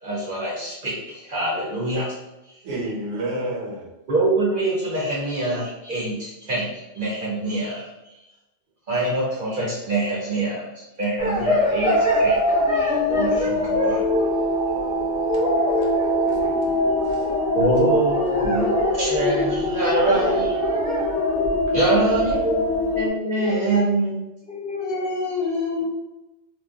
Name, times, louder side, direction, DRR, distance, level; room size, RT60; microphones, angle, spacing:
voice 1, 0.0-2.2 4.1-6.7 6.9-7.9 8.9-12.4 12.7-14.1 17.5-20.6 21.7-24.2, right 2 dB, 50° right, -5 dB, 0.8 m, -25 dB
voice 2, 2.6-3.9 16.1-17.3, right 1 dB, 75° right, -2 dB, 1.0 m, -31 dB
sound 1, 11.2-23.1, left 1 dB, 20° left, 0.6 m, -22 dB
voice 3, 23.4-23.8 24.5-25.8, left 3 dB, 55° left, -5 dB, 0.9 m, -27 dB
3.1 x 2.2 x 2.3 m, 0.98 s
omnidirectional pair, 1.3 m